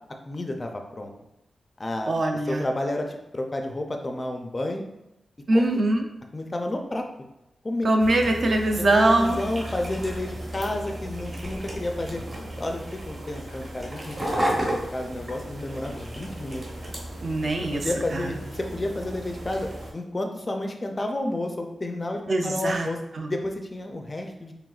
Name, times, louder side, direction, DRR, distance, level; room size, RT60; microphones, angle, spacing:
voice 1, 0.3-1.1 1.8-2.1 2.4-4.8 5.5-5.7 6.3-7.1 7.6-7.9 8.8-12.2 12.6-16.7 17.6-23.0 23.3-24.5, left 1 dB, 25° left, 4 dB, 0.4 m, -31 dB
voice 2, 2.1-2.6 5.5-6.0 7.8-9.4 17.2-17.9 18.1-18.3 22.3-22.9 23.2-23.3, right 2 dB, 50° right, 4 dB, 0.4 m, -22 dB
sound 1, 8.0-19.9, right 1 dB, 85° right, 0.8 m, -38 dB
sound 2, 9.2-17.0, right 1 dB, 30° right, 1.0 m, -34 dB
4.9 x 3.3 x 2.4 m, 0.89 s
wide cardioid pair, 145°, 0 cm